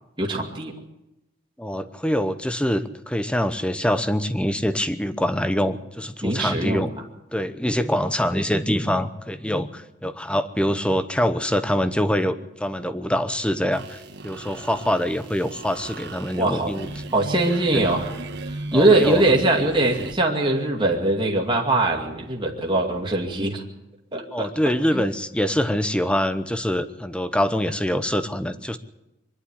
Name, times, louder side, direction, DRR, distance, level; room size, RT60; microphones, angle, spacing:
voice 1, 0.2-0.7 6.2-6.8 16.4-16.8 17.1-18.1 18.7-23.6 24.1-24.5 24.9-25.0, right 2 dB, 25° right, 0 dB, 2.4 m, -21 dB
voice 2, 1.6-6.9 7.3-16.9 18.7-19.2 24.3-28.8, equal, 5° left, 11 dB, 0.9 m, -24 dB
sound 1, 13.7-20.1, right 2 dB, 60° right, 1.6 m, -36 dB
23.0 x 11.5 x 9.9 m, 0.93 s
head